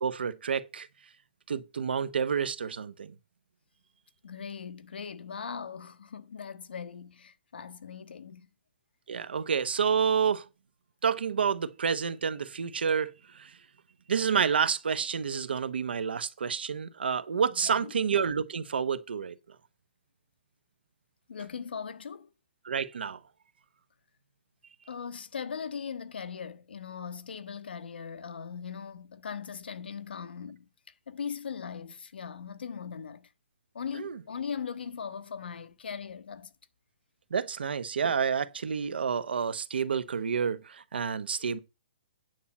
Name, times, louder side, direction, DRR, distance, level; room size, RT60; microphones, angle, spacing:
voice 1, 0.0-0.9 1.5-3.1 9.1-10.5 11.0-13.5 14.1-19.3 22.6-23.2 34.0-34.1 37.3-41.6, right 6 dB, 85° right, 1.0 m, -29 dB
voice 2, 4.2-8.5 17.5-17.9 21.3-22.3 24.9-33.3 33.7-36.5, left 6 dB, 85° left, 1.1 m, -39 dB
9.4 x 4.3 x 7.2 m
hypercardioid pair, 180°, 5 cm